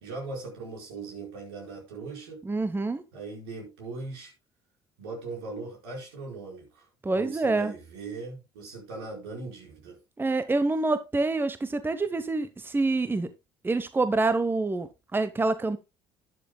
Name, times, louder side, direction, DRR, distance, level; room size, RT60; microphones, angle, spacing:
voice 1, 0.0-2.4 3.1-4.3 5.0-6.9 7.1-10.0, right 3 dB, 75° right, 4.7 m, -39 dB
voice 2, 2.4-3.0 7.0-7.7 10.2-13.3 13.6-15.8, right 3 dB, 15° right, 0.9 m, -26 dB
11.5 x 10.0 x 2.2 m
hypercardioid pair, 60°, 13 cm